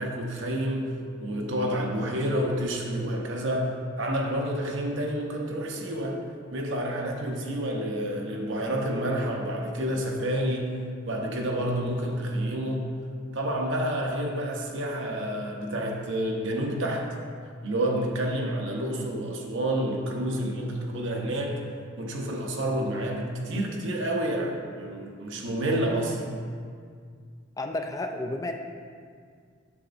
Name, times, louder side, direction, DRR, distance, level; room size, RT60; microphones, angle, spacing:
voice 1, 0.0-3.7 4.0-6.2 6.5-10.8 11.1-12.9 13.3-17.0 17.6-21.6 22.0-26.2, right 1 dB, 70° right, 0 dB, 0.9 m, -29 dB
voice 2, 27.6-28.5, left 2 dB, 15° left, 4 dB, 0.3 m, -31 dB
8.4 x 7.0 x 2.6 m, 2.1 s
head